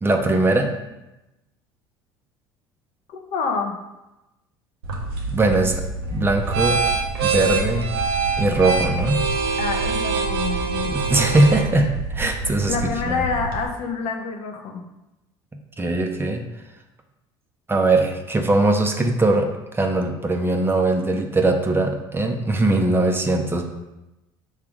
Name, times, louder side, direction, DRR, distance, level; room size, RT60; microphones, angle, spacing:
voice 1, 0.0-0.7 5.3-5.8 6.1-6.8 7.2-7.9 8.4-9.2 10.8-12.7 13.1-13.3 15.8-16.4 17.7-19.5 19.7-23.6, right 2 dB, 20° right, 3 dB, 0.9 m, -20 dB
voice 2, 3.1-3.7 9.6-11.0 12.7-14.8, left 4 dB, 60° left, 3 dB, 1.0 m, -27 dB
sound 1, 4.8-13.7, right 4 dB, 90° right, 1.0 m, -25 dB
5.8 x 3.2 x 5.0 m, 0.96 s
hypercardioid pair, 75°, 12 cm